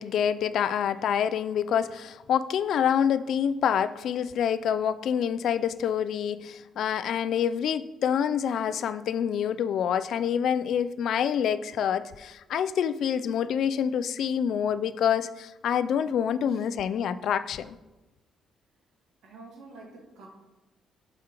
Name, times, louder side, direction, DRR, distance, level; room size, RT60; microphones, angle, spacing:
voice 1, 0.0-17.8, left 8 dB, 70° left, 13 dB, 0.3 m, -27 dB
voice 2, 19.2-20.3, right 3 dB, 80° right, -1 dB, 1.6 m, -48 dB
7.4 x 5.0 x 2.9 m, 1.0 s
cardioid pair, 90°, 0 cm